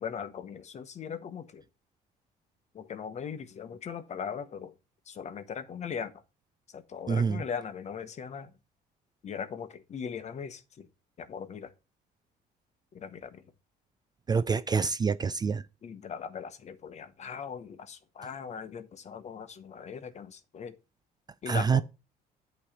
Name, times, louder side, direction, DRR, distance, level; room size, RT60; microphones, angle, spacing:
voice 1, 0.0-1.6 2.7-4.7 5.1-6.1 6.7-8.5 9.2-10.9 11.2-11.7 12.9-13.4 15.8-20.8 21.4-21.8, left 7 dB, 40° left, 1.0 m, -39 dB
voice 2, 7.1-7.4 14.3-15.6 21.5-21.8, right 5 dB, 25° right, 0.3 m, -26 dB
8.8 x 3.2 x 6.5 m
cardioid pair, 110°, 17 cm